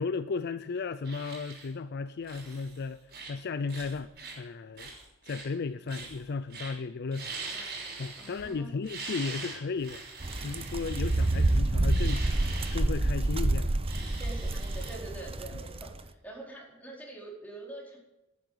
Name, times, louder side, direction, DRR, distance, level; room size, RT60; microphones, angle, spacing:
voice 1, 0.0-3.0 3.3-4.1 4.4-4.9 5.2-7.4 8.0-10.0 10.4-12.4 12.7-13.8, left 4 dB, 50° left, 13 dB, 0.5 m, -34 dB
sound 1, 1.0-1.7 2.2-2.8 3.1-3.4 3.7-4.4 4.8-5.5 5.9-6.2 6.5-6.7 7.1-8.5 8.8-12.8 13.8-14.9, right 3 dB, 50° right, 5.9 m, -42 dB
voice 2, 7.4-7.8 8.2-8.8 14.2-18.0, right 2 dB, 10° left, -3 dB, 4.6 m, -45 dB
sound 2, 10.2-15.9, right 2 dB, 30° right, 0.7 m, -28 dB
11.5 x 9.8 x 8.4 m, 0.98 s
head